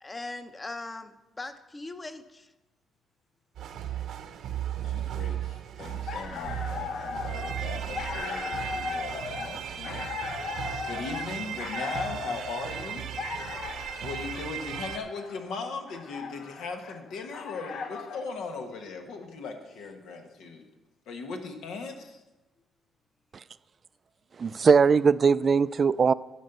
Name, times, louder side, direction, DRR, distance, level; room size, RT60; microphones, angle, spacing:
voice 1, 0.0-2.5, left 2 dB, 25° left, 10 dB, 0.8 m, -40 dB
sound 1, 3.5-15.0, right 9 dB, 75° right, 0.8 m, -36 dB
voice 2, 4.8-10.1 10.8-13.1 14.0-20.7 21.1-22.2, left 4 dB, 85° left, 4 dB, 1.4 m, -38 dB
sound 2, 5.9-18.3, left 5 dB, 65° left, 0.8 m, -38 dB
voice 3, 24.4-26.1, right 5 dB, 45° right, 17 dB, 0.3 m, -21 dB
11.0 x 5.3 x 6.8 m, 1.0 s
cardioid pair, 90°, 0 cm